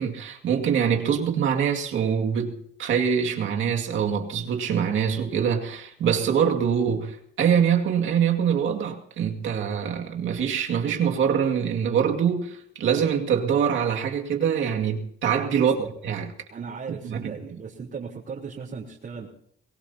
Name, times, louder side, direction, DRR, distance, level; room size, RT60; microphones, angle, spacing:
voice 1, 0.0-15.7 16.0-16.3 17.0-17.3, right 7 dB, 75° right, 2.2 m, -24 dB
voice 2, 15.6-15.9 16.5-19.3, right 5 dB, 50° right, 3.7 m, -36 dB
23.5 x 19.0 x 2.8 m
cardioid pair, 90°, 20 cm